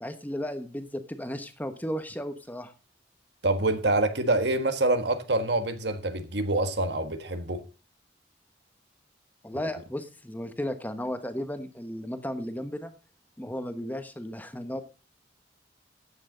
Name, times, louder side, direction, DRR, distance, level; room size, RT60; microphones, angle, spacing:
voice 1, 0.0-2.7 9.4-12.9 13.4-14.8, equal, 10° left, 1.1 m, -34 dB
voice 2, 3.4-7.6, right 2 dB, 70° right, 1.5 m, -26 dB
14.5 x 9.4 x 3.8 m
head